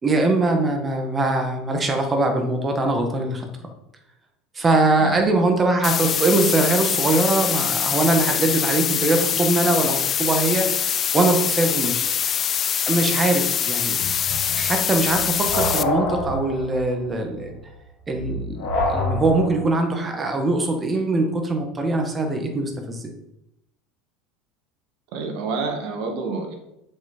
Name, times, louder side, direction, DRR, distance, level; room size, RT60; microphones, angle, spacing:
voice 1, 0.0-3.5 4.5-10.9 11.1-12.1 12.9-17.5 18.1-23.1, right 2 dB, 25° right, 4 dB, 1.7 m, -22 dB
sound 1, 5.8-15.8, left 8 dB, 35° left, 0.4 m, -24 dB
sound 2, 14.0-19.7, left 2 dB, 60° left, 2.1 m, -27 dB
voice 2, 25.1-26.5, right 4 dB, 60° right, 3 dB, 1.8 m, -28 dB
7.2 x 5.9 x 4.3 m, 0.84 s
hypercardioid pair, 75°, 0 cm